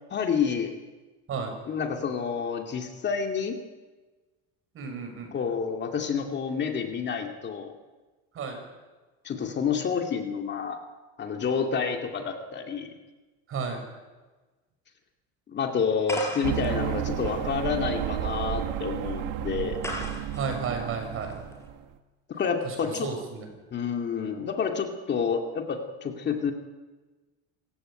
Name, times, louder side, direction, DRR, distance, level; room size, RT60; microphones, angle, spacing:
voice 1, 0.1-0.7 1.7-3.6 5.3-7.7 9.2-10.8 11.2-12.9 15.5-19.8 22.4-23.1 23.7-26.5, left 6 dB, 30° left, 4 dB, 2.4 m, -29 dB
voice 2, 4.7-5.4 8.3-8.6 13.5-13.8 20.3-21.4 22.6-23.5, right 5 dB, 40° right, 4 dB, 6.7 m, -33 dB
sound 1, 16.0-21.7, left 1 dB, 10° left, 4.8 m, -39 dB
sound 2, 16.4-21.9, right 12 dB, 65° right, 1.7 m, -32 dB
27.0 x 16.0 x 9.1 m, 1.3 s
cardioid pair, 145°, 33 cm